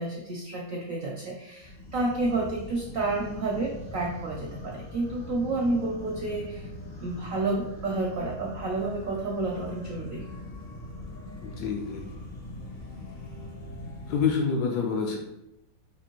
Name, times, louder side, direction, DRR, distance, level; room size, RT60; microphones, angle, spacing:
voice 1, 0.0-6.7 7.0-10.2, right 2 dB, 75° right, -2 dB, 0.7 m, -30 dB
sound 1, 1.6-14.3, left 2 dB, 50° left, 0.7 m, -41 dB
voice 2, 11.4-12.2 14.1-15.2, left 5 dB, 70° left, 1 dB, 1.0 m, -27 dB
5.1 x 2.6 x 2.9 m, 0.87 s
omnidirectional pair, 2.0 m